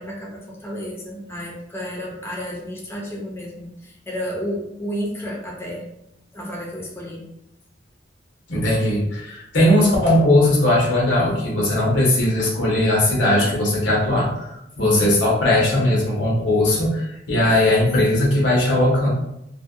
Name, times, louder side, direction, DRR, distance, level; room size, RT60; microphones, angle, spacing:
voice 1, 0.0-5.8 6.3-7.2 11.2-11.4 14.8-15.2, equal, 15° left, -3 dB, 0.4 m, -31 dB
voice 2, 8.5-14.5 14.8-19.1, left 1 dB, 90° left, -4 dB, 0.9 m, -18 dB
2.6 x 2.1 x 2.3 m, 0.82 s
head